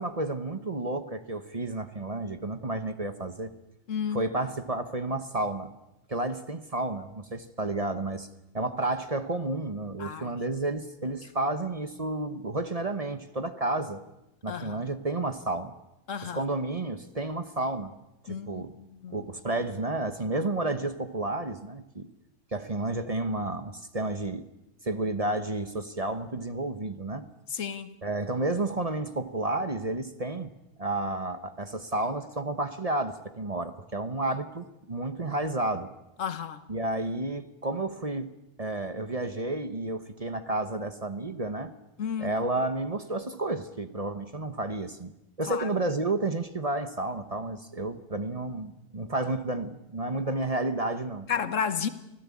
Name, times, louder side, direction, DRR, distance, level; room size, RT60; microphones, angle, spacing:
voice 1, 0.0-3.5 4.1-5.7 6.1-8.3 8.5-14.0 14.4-15.7 16.2-17.9 18.2-18.7 19.1-22.1 22.5-24.5 24.8-27.2 28.0-30.5 30.8-35.9 36.7-38.3 38.6-41.7 42.2-51.3, right 2 dB, 30° right, 1.1 m, -31 dB
voice 2, 3.9-4.3 10.0-10.4 14.5-14.8 16.1-16.4 18.3-18.7 19.0-19.2 27.5-27.9 36.2-36.6 42.0-42.3 45.5-45.7 51.3-51.9, left 7 dB, 75° left, 1.5 m, -32 dB
25.5 x 16.5 x 8.5 m
omnidirectional pair, 1.4 m